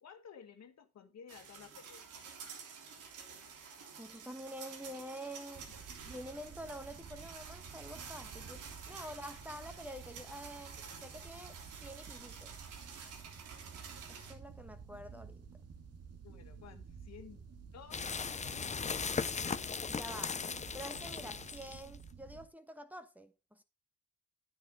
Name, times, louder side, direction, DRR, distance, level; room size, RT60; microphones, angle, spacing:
voice 1, 0.0-2.2 16.2-17.4 17.7-18.0, left 7 dB, 60° left, 1.9 m, -54 dB
sound 1, 1.3-14.3, right 6 dB, 90° right, 3.4 m, -50 dB
voice 2, 4.0-5.7 6.1-12.5 14.1-15.4 19.4-19.6 19.9-20.4 20.7-23.6, equal, 5° right, 1.2 m, -48 dB
sound 2, 5.5-22.5, right 6 dB, 55° right, 2.0 m, -52 dB
sound 3, 17.9-22.0, left 5 dB, 25° left, 0.6 m, -38 dB
10.0 x 9.7 x 3.7 m
cardioid pair, 90°, 30 cm